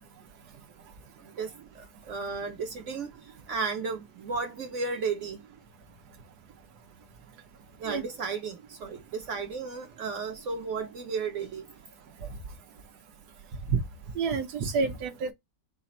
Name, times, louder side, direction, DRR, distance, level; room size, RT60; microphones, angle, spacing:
voice 1, 1.7-3.1 3.5-5.4 7.8-11.6, right 4 dB, 55° right, 1.0 m, -34 dB
voice 2, 14.2-15.3, right 5 dB, 70° right, 1.4 m, -28 dB
5.0 x 2.4 x 4.1 m
omnidirectional pair, 1.8 m